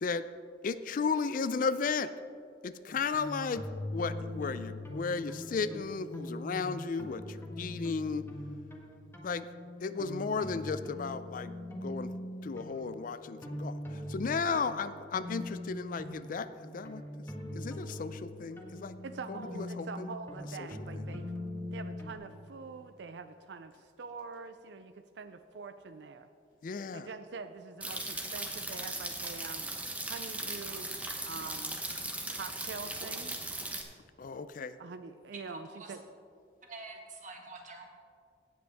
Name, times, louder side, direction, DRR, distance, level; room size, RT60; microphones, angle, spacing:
voice 1, 0.6-2.1 2.6-3.7 3.9-8.3 9.2-9.5 9.8-11.5 11.8-12.1 12.4-13.8 14.1-17.0 17.6-19.0 19.3-20.1 26.6-27.1 34.2-34.8, left 5 dB, 50° left, 13 dB, 0.4 m, -34 dB
sound 1, 2.9-22.1, left 1 dB, 15° left, 1.4 m, -42 dB
voice 2, 19.0-21.3 21.7-26.3 26.9-29.7 30.1-31.8 32.3-33.4 34.8-36.0, right 4 dB, 75° right, 10 dB, 0.4 m, -44 dB
sound 2, 27.8-33.8, right 2 dB, 10° right, 0.9 m, -38 dB
voice 3, 35.3-36.0 36.6-37.9, right 3 dB, 45° right, 1 dB, 1.7 m, -47 dB
17.5 x 7.8 x 3.5 m, 2.4 s
head